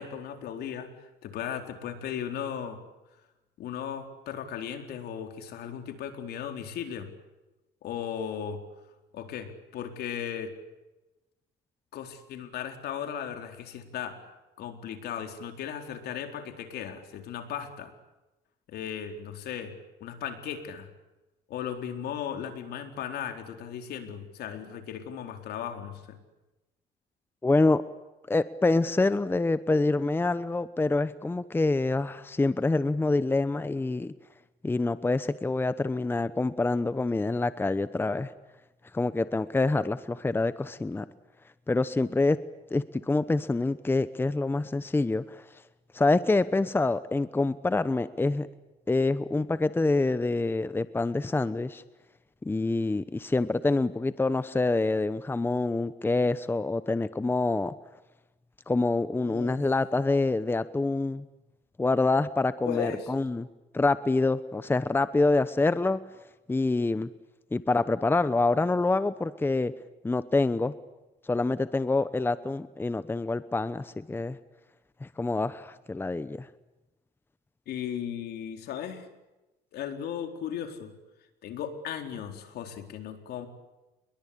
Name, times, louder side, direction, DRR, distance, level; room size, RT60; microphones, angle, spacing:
voice 1, 0.0-2.8 3.6-7.1 7.8-8.6 9.1-10.6 11.9-17.9 18.7-19.7 20.0-20.9 21.5-26.2 59.2-59.6 62.7-63.1 77.7-79.1 79.7-80.9 81.4-83.5, left 8 dB, 70° left, 6 dB, 4.3 m, -36 dB
voice 2, 27.4-27.8 28.3-34.1 34.6-38.3 38.9-41.1 41.7-42.4 42.7-45.4 45.9-48.5 48.9-51.8 52.4-57.7 58.7-61.2 61.8-63.5 63.7-66.0 66.5-67.1 67.5-69.7 70.0-70.7 71.2-74.4 75.0-76.5, left 3 dB, 15° left, 14 dB, 1.0 m, -26 dB
28.5 x 22.0 x 8.6 m, 1.0 s
cardioid pair, 110°, 17 cm